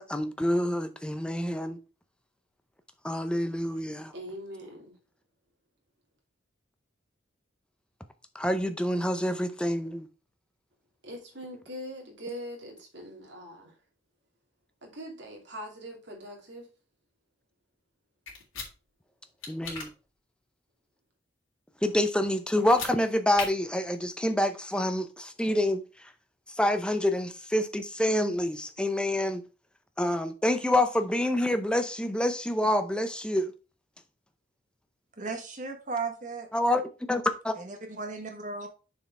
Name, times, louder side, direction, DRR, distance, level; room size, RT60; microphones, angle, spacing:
voice 1, 0.0-1.8 3.0-4.1 8.3-10.1 19.5-19.9 21.8-26.1 26.5-29.4 30.0-33.5 36.5-37.6, left 1 dB, 5° left, 0.6 m, -27 dB
voice 2, 4.1-5.0 11.0-13.8 14.8-16.7, equal, 60° right, 2.6 m, -42 dB
sound 1, 18.3-18.7 19.4-19.9 22.6-22.9 23.3-23.5, left 5 dB, 85° left, 2.7 m, -36 dB
voice 3, 35.2-36.5 37.6-38.7, right 4 dB, 40° right, 1.2 m, -35 dB
6.6 x 4.5 x 4.7 m
head